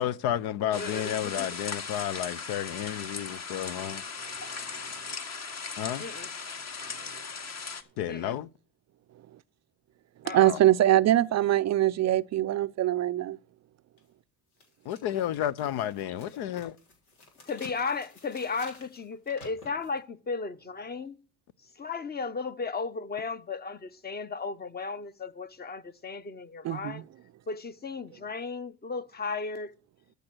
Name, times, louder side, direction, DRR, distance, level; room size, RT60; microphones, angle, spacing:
voice 1, 0.0-4.0 5.8-6.0 8.0-8.5 10.4-10.6 14.9-16.7, left 11 dB, 60° left, 0.7 m, -31 dB
voice 2, 0.6-1.5 6.0-6.3 8.1-8.4 10.2-10.5 17.5-21.1 21.8-27.0 27.5-29.7, left 4 dB, 20° left, 1.0 m, -35 dB
sound 1, 0.7-7.8, left 5 dB, 40° left, 1.8 m, -38 dB
voice 3, 10.2-13.4 26.6-27.0, right 13 dB, 40° right, 0.5 m, -23 dB
sound 2, 14.0-14.1 14.6-20.0, left 2 dB, 90° left, 3.7 m, -53 dB
13.5 x 6.7 x 6.2 m
supercardioid pair, 80°, 42 cm